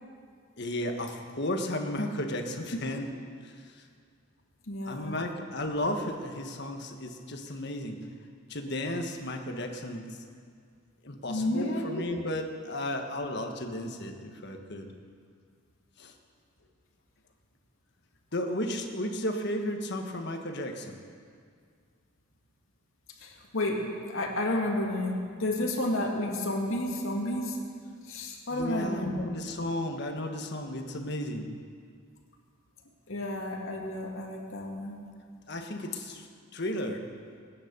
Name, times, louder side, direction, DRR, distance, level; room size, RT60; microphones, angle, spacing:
voice 1, 0.6-3.1 3.4-3.8 4.8-8.0 8.5-10.1 11.0-14.9 16.0-16.1 18.3-21.0 28.5-31.5 35.5-36.3 36.5-37.0, left 1 dB, 55° left, 4 dB, 1.5 m, -34 dB
voice 2, 4.7-5.2 11.3-12.1 23.2-27.6 28.1-29.3 33.1-35.0, left 1 dB, 80° left, 0 dB, 2.3 m, -31 dB
21.5 x 9.7 x 6.9 m, 2.1 s
head